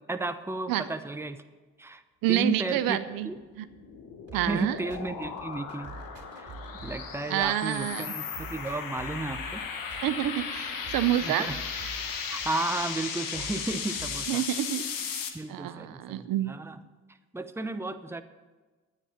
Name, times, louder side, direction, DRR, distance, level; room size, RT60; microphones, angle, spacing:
voice 1, 0.1-1.4 1.8-2.0 2.3-3.0 3.2-3.4 4.5-5.9 6.4-6.5 6.8-9.6 11.2-11.6 12.3-14.4 15.3-16.8 17.3-18.2, right 2 dB, 5° right, 9 dB, 0.8 m, -33 dB
voice 2, 2.2-3.3 3.6-3.7 4.3-4.8 7.3-8.1 10.0-11.5 14.3-15.2 15.5-16.5, right 13 dB, 70° right, 12 dB, 0.7 m, -28 dB
sound 1, 3.3-15.3, left 6 dB, 70° left, 1.4 m, -36 dB
sound 2, 4.3-14.3, right 3 dB, 45° right, 2.6 m, -47 dB
9.8 x 9.2 x 7.2 m, 1.3 s
hypercardioid pair, 50°, 35 cm